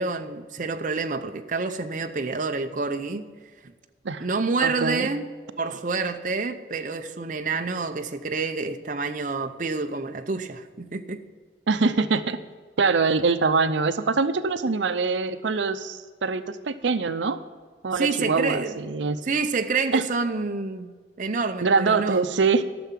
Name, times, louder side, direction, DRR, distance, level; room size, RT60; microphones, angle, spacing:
voice 1, 0.0-3.3 4.2-5.3 5.6-11.2 17.9-18.8 19.2-22.3, right 4 dB, 45° right, 0.7 m, -28 dB
voice 2, 4.6-5.1 11.7-12.4 12.8-17.4 17.8-19.2 19.9-20.0 21.6-22.6, right 4 dB, 85° right, 0.6 m, -23 dB
13.0 x 6.8 x 7.4 m
head